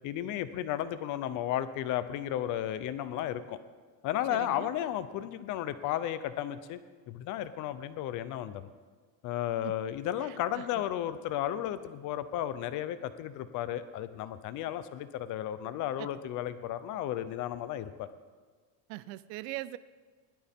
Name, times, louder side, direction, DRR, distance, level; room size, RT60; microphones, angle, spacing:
voice 1, 0.0-3.6 4.0-6.8 7.1-8.7 9.2-18.1, left 11 dB, 40° left, 12 dB, 0.7 m, -34 dB
voice 2, 4.3-4.8 9.6-9.7 10.2-10.8 16.0-16.1 18.9-19.8, right 17 dB, 85° right, 16 dB, 0.7 m, -41 dB
20.0 x 11.5 x 3.6 m, 1.5 s
cardioid pair, 165°, 49 cm